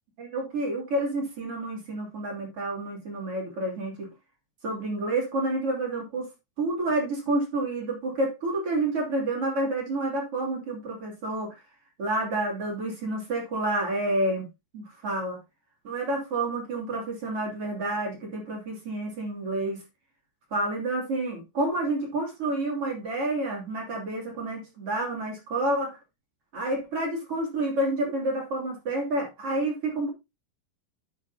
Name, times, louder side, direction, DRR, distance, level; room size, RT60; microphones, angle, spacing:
voice 1, 0.2-4.1 4.6-6.3 6.6-11.5 12.0-14.5 14.7-15.4 15.8-19.8 20.5-26.0 26.5-30.1, right 2 dB, 35° right, 0 dB, 3.3 m, -29 dB
10.5 x 8.1 x 2.8 m, 0.23 s
omnidirectional pair, 5.1 m